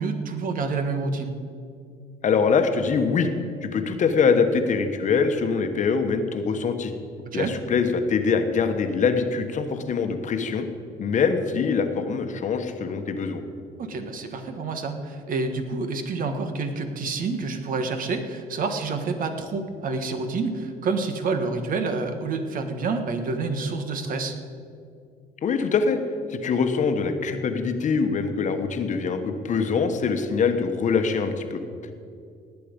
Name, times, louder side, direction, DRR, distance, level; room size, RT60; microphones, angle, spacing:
voice 1, 0.0-1.4 7.2-7.6 13.8-24.4, right 4 dB, 55° right, 7 dB, 1.4 m, -28 dB
voice 2, 2.2-3.3 3.6-6.9 7.3-10.7 11.0-13.4 25.4-26.0 26.3-31.9, left 5 dB, 45° left, 7 dB, 1.2 m, -23 dB
19.0 x 8.4 x 5.3 m, 2.4 s
cardioid pair, 110°, 17 cm